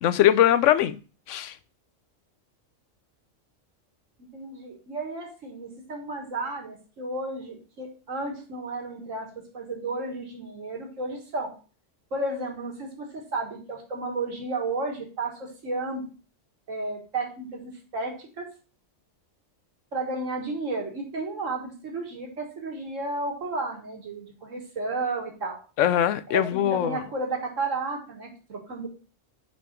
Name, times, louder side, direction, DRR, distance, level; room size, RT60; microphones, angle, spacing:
voice 1, 0.0-1.0 1.3-1.5 25.8-27.0, left 11 dB, 75° left, 0.9 m, -21 dB
voice 2, 4.3-11.5 12.1-16.1 16.7-18.5 19.9-25.6 26.3-28.9, right 2 dB, 80° right, 2.0 m, -32 dB
5.5 x 5.2 x 4.3 m
omnidirectional pair, 1.3 m